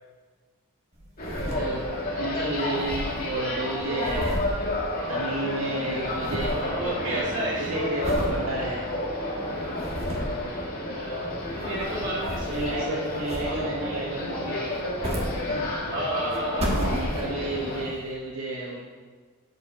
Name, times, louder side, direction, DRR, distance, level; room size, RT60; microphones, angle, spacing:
sound 1, 1.0-2.1 2.4-2.5 2.6-5.4 5.7-6.7 7.1-7.5 8.0-8.4 8.9-9.0 9.6-10.4 11.4-12.9 13.3-13.8 14.7-15.9 16.3-17.5 18.1-18.2, equal, 30° right, 1.3 m, -33 dB
sound 2, 1.2-17.8, left 1 dB, 40° left, 1.9 m, -31 dB
voice 1, 1.5-1.8 2.2-4.4 5.1-8.9 12.5-14.6 15.5-15.7 16.6-18.8, right 1 dB, 85° right, -4 dB, 1.4 m, -32 dB
voice 2, 6.4-7.9 10.9-14.0 15.9-16.7, right 1 dB, 60° right, -4 dB, 2.1 m, -32 dB
7.7 x 7.5 x 4.3 m, 1.4 s
head